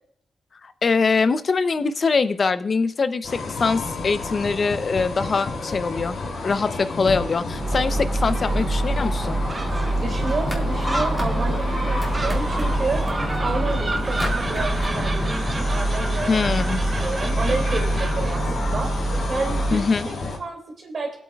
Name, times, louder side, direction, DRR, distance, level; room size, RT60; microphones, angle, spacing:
voice 1, 0.6-6.2 6.4-9.4 16.3-16.8 19.7-20.1, left 4 dB, 45° left, 12 dB, 0.6 m, -23 dB
sound 1, 3.2-20.4, left 3 dB, 65° left, 2.8 m, -31 dB
Gull seagull, 7.5-19.9, right 1 dB, 25° right, 0.7 m, -25 dB
sound 2, 9.7-9.9 10.2-11.7 12.0-13.8 14.2-14.9, equal, ahead, 2.0 m, -33 dB
voice 2, 10.0-16.7 17.0-18.9 19.3-19.8 20.2-21.2, right 3 dB, 50° right, 2 dB, 2.6 m, -30 dB
23.5 x 8.4 x 2.4 m, 0.64 s
wide cardioid pair, 120°, 0 cm